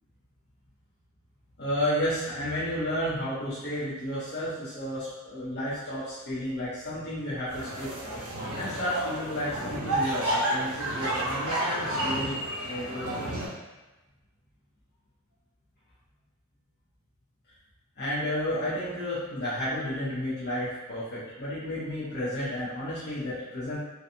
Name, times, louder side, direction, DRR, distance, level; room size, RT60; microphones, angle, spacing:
voice 1, 1.6-8.2 8.6-12.4 12.6-13.3 18.0-23.8, equal, 45° left, -11 dB, 0.8 m, -32 dB
sound 1, 7.5-13.5, right 1 dB, 80° right, 0.9 m, -31 dB
2.7 x 2.3 x 2.6 m, 1.1 s
head